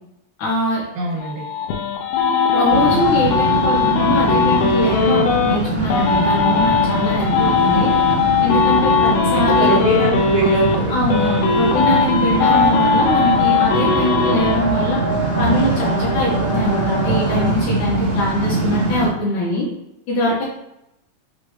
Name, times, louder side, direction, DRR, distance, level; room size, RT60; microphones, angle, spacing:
voice 1, 0.4-0.8 2.5-7.9 8.4-9.8 10.9-15.0 15.4-19.7 20.1-20.4, left 1 dB, 70° left, -5 dB, 2.0 m, -22 dB
voice 2, 0.9-1.5 9.1-11.0 12.3-12.5, right 3 dB, 90° right, -2 dB, 2.7 m, -23 dB
sound 1, 1.2-5.6 5.9-10.8 11.1-14.6, left 5 dB, 90° left, 2.4 m, -18 dB
sound 2, 2.7-19.1, right 2 dB, 65° right, 0.8 m, -23 dB
sound 3, 12.4-17.5, right 1 dB, 55° left, 1.6 m, -27 dB
6.2 x 2.4 x 3.1 m, 0.86 s
omnidirectional pair, 4.0 m